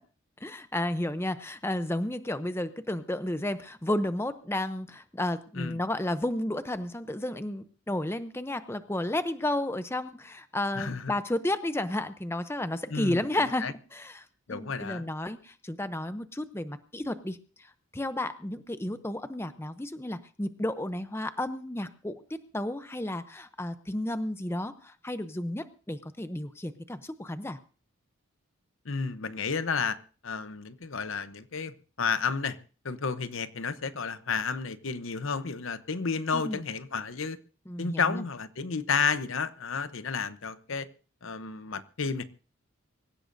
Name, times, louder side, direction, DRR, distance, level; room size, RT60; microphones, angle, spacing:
voice 1, 0.4-22.2 22.5-27.6 36.3-36.6 37.7-38.2, left 1 dB, 10° left, 0.6 m, -32 dB
voice 2, 10.7-11.1 12.9-13.3 13.6-13.7 14.5-15.0 28.8-30.0 30.2-32.6 32.8-37.4 37.8-40.9 41.2-42.2, left 5 dB, 70° left, 0.8 m, -31 dB
24.5 x 15.5 x 2.6 m
head